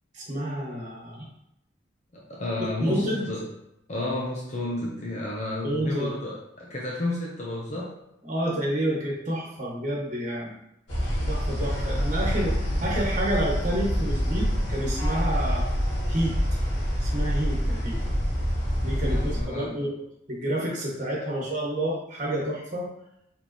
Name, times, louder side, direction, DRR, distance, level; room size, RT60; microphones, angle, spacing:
voice 1, 0.1-1.3 2.8-3.3 5.6-6.1 8.2-10.5 11.3-15.7 16.1-16.4 17.0-18.0 18.8-19.9 20.3-22.9, right 1 dB, 40° right, -3 dB, 1.3 m, -29 dB
voice 2, 2.1-3.4 3.9-7.9 19.0-19.7, left 1 dB, 40° left, -4 dB, 0.8 m, -31 dB
sound 1, 10.9-19.4, equal, 90° left, 1.7 m, -26 dB
4.7 x 3.6 x 3.0 m, 0.79 s
head